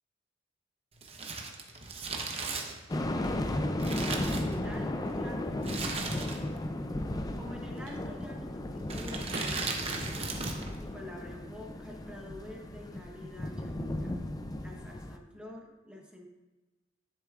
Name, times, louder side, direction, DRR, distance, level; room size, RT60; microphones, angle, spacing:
Crumpling crinkling, 1.0-5.0 5.6-6.7 6.9-7.0 7.8-8.2 8.8-10.8 11.0-11.1, right 3 dB, 30° right, 0.8 m, -37 dB
sound 1, 2.9-15.2, left 1 dB, 20° left, 0.4 m, -35 dB
voice 1, 4.0-6.2 7.3-10.2 10.8-14.2 14.6-16.3, left 1 dB, 5° right, 0 dB, 1.0 m, -47 dB
Telephone, 5.8-10.5, right 2 dB, 75° right, 2.1 m, -48 dB
10.5 x 6.8 x 2.4 m, 1.1 s
head